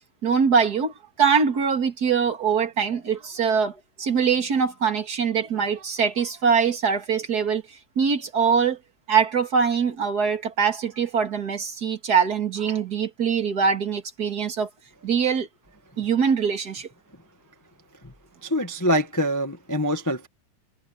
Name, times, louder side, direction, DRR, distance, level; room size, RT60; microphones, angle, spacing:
voice 1, 0.2-0.9 1.2-7.6 8.0-8.8 9.1-14.7 15.0-15.5 16.0-16.9, right 6 dB, 35° right, 2.5 m, -23 dB
voice 2, 18.4-20.3, equal, 10° left, 0.9 m, -24 dB
omnidirectional pair, 3.6 m